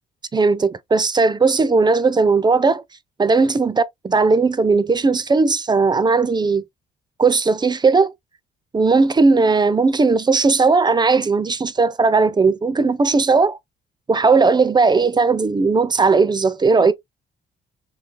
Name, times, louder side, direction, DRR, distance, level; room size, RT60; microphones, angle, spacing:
voice 1, 0.3-2.8 3.2-6.6 7.2-8.1 8.7-13.6 14.1-16.9, right 4 dB, 20° right, 0.4 m, -17 dB
3.8 x 2.8 x 2.4 m
cardioid pair, 90°, 20 cm